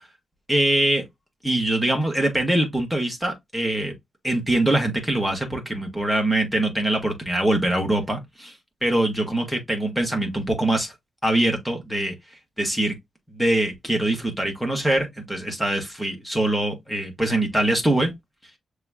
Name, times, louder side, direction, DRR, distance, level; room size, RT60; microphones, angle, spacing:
voice 1, 0.5-1.0 1.4-3.9 4.2-8.5 8.8-10.9 11.2-12.1 12.6-12.9 13.3-18.1, right 1 dB, ahead, 1.6 m, -23 dB
6.7 x 3.1 x 2.3 m
wide cardioid pair, 160°, 0 cm